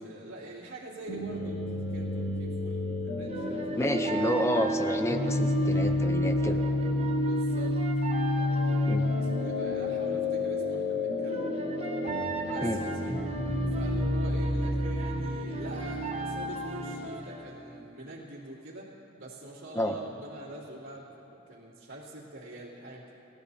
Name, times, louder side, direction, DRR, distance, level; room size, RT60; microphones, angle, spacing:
voice 1, 0.0-4.1 6.0-7.8 8.3-11.8 12.5-23.1, right 1 dB, 90° right, -9 dB, 2.9 m, -45 dB
sound 1, 1.1-17.1, left 1 dB, 85° left, 2.1 m, -30 dB
sound 2, 3.3-9.5 11.3-17.5, right 2 dB, 30° right, 1.0 m, -40 dB
voice 2, 3.8-6.6 8.9-9.0 12.6-12.8 19.7-20.0, equal, 15° left, 7 dB, 0.6 m, -29 dB
27.0 x 13.5 x 2.8 m, 2.8 s
head